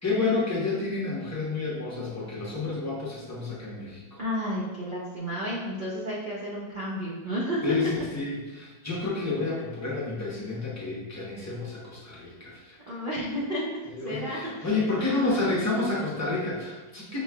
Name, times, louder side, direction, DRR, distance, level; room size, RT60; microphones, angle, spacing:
voice 1, 0.0-4.2 7.6-12.8 13.9-17.2, left 3 dB, 20° left, -7 dB, 0.4 m, -30 dB
voice 2, 4.2-7.6 12.9-13.6 14.0-15.5, equal, 80° right, -7 dB, 0.4 m, -32 dB
5.7 x 3.1 x 2.3 m, 1.2 s
omnidirectional pair, 1.9 m